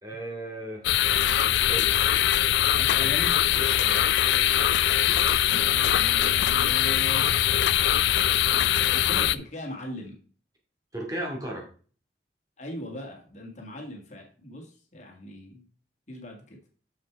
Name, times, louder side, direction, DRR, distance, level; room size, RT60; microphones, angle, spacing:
voice 1, 0.0-1.9 3.5-4.2 10.9-11.6, right 1 dB, 20° right, 0 dB, 2.3 m, -36 dB
sound 1, 0.8-9.4, left 11 dB, 80° left, 0.4 m, -22 dB
voice 2, 2.8-3.4 5.7-7.5 8.5-10.2 12.6-15.6 16.1-16.6, left 1 dB, 40° left, 1 dB, 1.8 m, -39 dB
6.6 x 6.4 x 4.6 m, 0.40 s
head